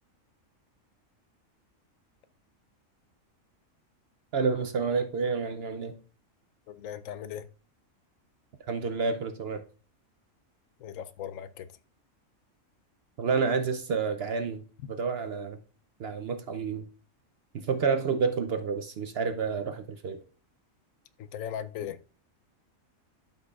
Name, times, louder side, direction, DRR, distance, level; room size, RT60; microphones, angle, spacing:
voice 1, 4.3-5.9 8.7-9.6 13.2-14.6 14.9-15.6 16.0-16.9 17.5-20.2, right 5 dB, 60° right, 0.7 m, -29 dB
voice 2, 6.7-7.5 10.8-11.7 21.2-22.0, left 9 dB, 75° left, 1.0 m, -38 dB
12.0 x 5.5 x 2.4 m
omnidirectional pair, 1.4 m